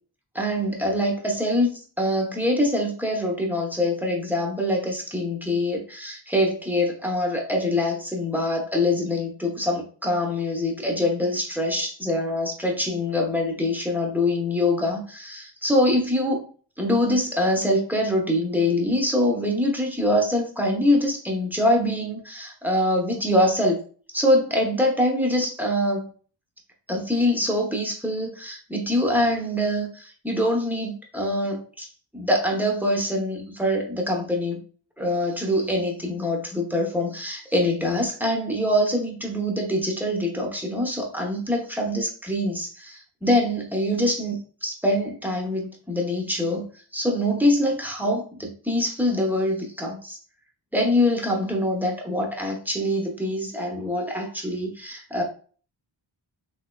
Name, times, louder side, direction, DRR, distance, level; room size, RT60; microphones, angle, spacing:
voice 1, 0.3-16.5 16.8-23.8 24.1-26.0 26.9-31.9 32.1-34.6 35.0-46.6 46.9-50.2 50.7-55.2, left 1 dB, 5° right, 0 dB, 0.9 m, -24 dB
3.4 x 3.3 x 2.3 m, 0.41 s
wide cardioid pair, 85°, 46 cm